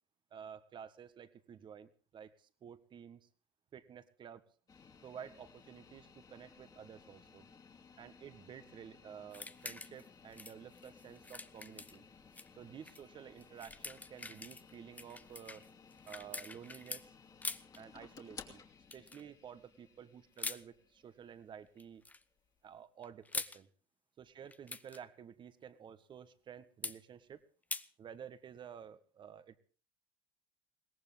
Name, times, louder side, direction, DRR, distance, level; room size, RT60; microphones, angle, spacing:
voice 1, 0.3-3.3 3.7-4.5 5.0-7.5 8.0-12.0 12.6-15.6 16.0-17.1 17.8-18.6 18.9-22.0 22.6-23.7 24.2-27.4 28.0-29.6, right 8 dB, 40° right, 13 dB, 1.6 m, -52 dB
sound 1, 4.7-22.8, left 5 dB, 30° left, 2.7 m, -59 dB
sound 2, 9.3-10.1 10.3-12.5 12.8-13.0 13.4-17.0 17.4-17.8 18.9-19.2 20.4-20.6 21.8-22.2 23.0-23.6 24.4-25.0 26.8-27.0 27.7-27.9, left 3 dB, 10° left, 0.8 m, -44 dB
22.0 x 17.5 x 3.6 m, 0.38 s
supercardioid pair, 90°, 13 cm